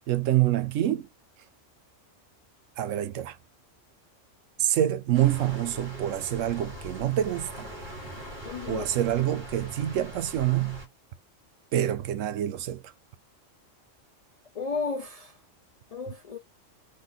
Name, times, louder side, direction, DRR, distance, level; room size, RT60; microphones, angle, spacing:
voice 1, 0.1-1.1 2.8-3.4 4.6-7.7 8.7-10.8 11.7-12.8, right 12 dB, 90° right, 1.0 m, -26 dB
sound 1, 5.1-10.9, equal, 40° right, 1.7 m, -42 dB
voice 2, 8.4-8.9 14.5-15.4 15.9-16.4, left 5 dB, 65° left, 0.3 m, -33 dB
3.3 x 2.5 x 3.9 m
omnidirectional pair, 1.3 m